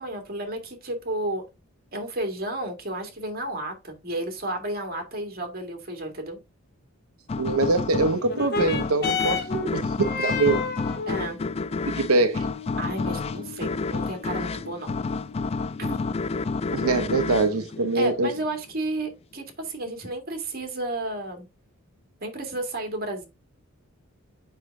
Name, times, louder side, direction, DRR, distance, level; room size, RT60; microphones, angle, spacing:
voice 1, 0.0-1.4 1.9-6.4 11.1-11.4 12.8-14.9 15.8-16.1 17.9-21.5 22.2-23.3, right 2 dB, 45° right, 2.4 m, -32 dB
sound 1, 7.3-18.6, left 3 dB, 30° left, 0.3 m, -30 dB
voice 2, 7.4-10.6 11.9-12.5 16.7-18.3, right 3 dB, 80° right, 0.8 m, -23 dB
sound 2, 8.2-17.2 18.0-18.1, left 5 dB, 45° left, 1.6 m, -34 dB
7.2 x 5.7 x 3.6 m
head